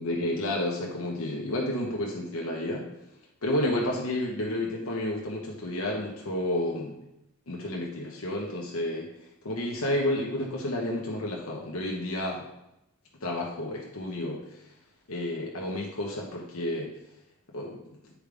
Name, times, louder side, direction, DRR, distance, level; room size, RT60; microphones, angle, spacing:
voice 1, 0.0-2.9 3.4-7.0 7.5-9.1 9.4-12.4 13.2-14.4 15.1-16.9 17.5-17.8, left 1 dB, 75° left, -2 dB, 1.1 m, -31 dB
8.8 x 5.0 x 3.5 m, 0.87 s
head